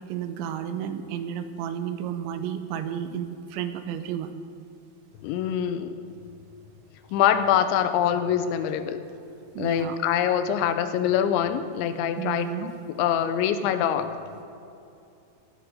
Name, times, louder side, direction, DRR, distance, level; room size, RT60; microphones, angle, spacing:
voice 1, 0.0-4.3 9.5-10.0 12.2-12.7, right 9 dB, 85° right, 9 dB, 3.0 m, -32 dB
voice 2, 5.2-5.9 7.1-9.0 9.6-14.1, left 9 dB, 85° left, 10 dB, 3.0 m, -24 dB
16.0 x 12.0 x 5.4 m, 2.7 s
omnidirectional pair, 5.4 m